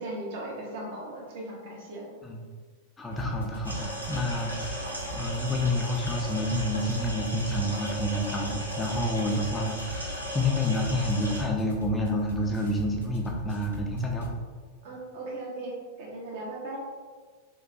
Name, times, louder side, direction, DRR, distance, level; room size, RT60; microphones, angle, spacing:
voice 1, 0.0-2.1 14.8-16.8, right 2 dB, 55° right, -3 dB, 0.7 m, -37 dB
voice 2, 3.0-14.3, left 1 dB, 15° left, 0 dB, 0.3 m, -29 dB
sound 1, 3.1-14.3, right 1 dB, 75° left, 0.7 m, -39 dB
sound 2, 3.6-11.4, equal, 85° right, 0.5 m, -36 dB
3.1 x 2.0 x 2.7 m, 1.6 s
figure-of-eight pair, 90°, 0 cm